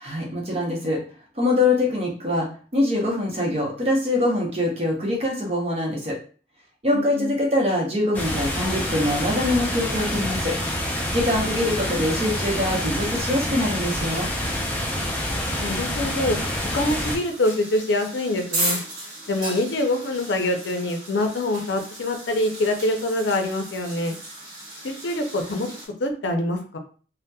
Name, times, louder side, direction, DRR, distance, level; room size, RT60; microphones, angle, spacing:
voice 1, 0.0-1.0 1.4-2.5 2.7-6.2 6.8-10.5 11.1-14.3, left 1 dB, 35° right, -2 dB, 0.7 m, -23 dB
voice 2, 6.9-7.3 15.6-16.4 16.7-18.8 19.3-24.2 24.8-25.7 26.0-26.8, left 1 dB, 80° left, 5 dB, 0.5 m, -25 dB
sound 1, 8.1-17.2, left 1 dB, 10° left, 0.5 m, -27 dB
sound 2, 16.9-25.9, right 1 dB, 70° right, 0.9 m, -35 dB
2.7 x 2.1 x 2.2 m, 0.40 s
head